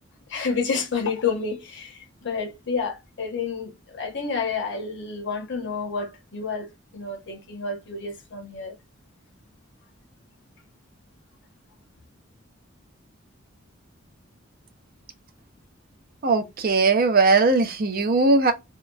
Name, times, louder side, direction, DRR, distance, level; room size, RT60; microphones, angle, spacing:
voice 1, 0.3-8.7, left 5 dB, 60° left, 1.0 m, -29 dB
voice 2, 16.2-18.5, right 3 dB, 45° right, 0.6 m, -19 dB
2.8 x 2.2 x 2.3 m
head